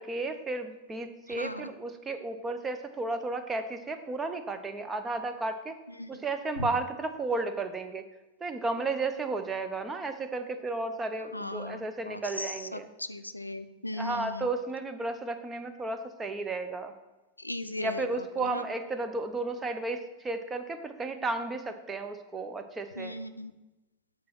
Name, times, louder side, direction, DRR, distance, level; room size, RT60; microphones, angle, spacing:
voice 1, 0.0-5.8 6.1-8.0 8.4-12.9 13.9-16.9 17.8-23.2, right 3 dB, 15° right, 8 dB, 0.7 m, -33 dB
voice 2, 1.4-1.7 6.0-6.2 6.6-6.7 11.3-14.5 17.4-18.6 23.0-23.5, left 1 dB, 85° left, 11 dB, 0.4 m, -38 dB
8.5 x 4.2 x 5.9 m, 1.1 s
figure-of-eight pair, 90°, 0 cm